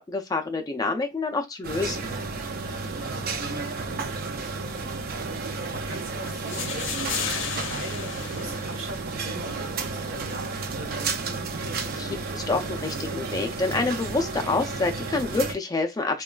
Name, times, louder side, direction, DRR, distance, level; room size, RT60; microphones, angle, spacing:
voice 1, 0.1-2.0 12.0-16.2, left 3 dB, 20° left, 0.3 m, -27 dB
sound 1, 1.6-15.5, right 3 dB, 50° right, 0.4 m, -32 dB
voice 2, 2.6-11.8, right 1 dB, 75° right, 1.1 m, -42 dB
sound 2, 6.2-9.3, left 6 dB, 75° left, 0.5 m, -34 dB
3.0 x 2.2 x 2.3 m
head